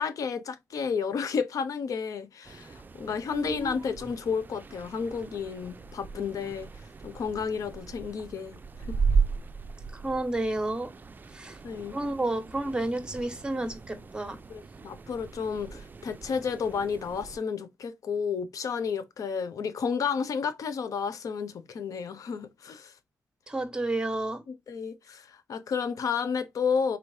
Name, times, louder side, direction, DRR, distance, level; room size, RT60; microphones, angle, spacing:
voice 1, 0.0-6.7 7.0-8.6 8.9-9.0 11.6-12.0 14.5-22.9 24.5-27.0, left 6 dB, 70° left, 0.7 m, -31 dB
sound 1, 2.4-17.4, right 5 dB, 30° right, 0.4 m, -36 dB
voice 2, 3.3-3.7 9.9-10.9 11.3-11.6 11.9-14.4 23.5-24.4, right 2 dB, 15° right, 1.2 m, -31 dB
4.0 x 3.2 x 2.7 m
cardioid pair, 80°, 6 cm